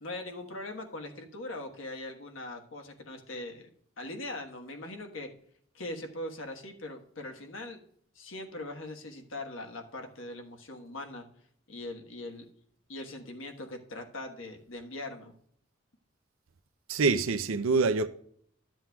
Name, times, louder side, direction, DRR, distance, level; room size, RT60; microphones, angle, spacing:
voice 1, 0.0-3.7 4.0-5.3 5.7-7.8 8.1-11.2 11.7-12.5 12.9-15.3, left 2 dB, 75° left, 1.4 m, -41 dB
voice 2, 16.9-18.1, right 4 dB, 90° right, 0.6 m, -25 dB
13.0 x 7.6 x 2.3 m
head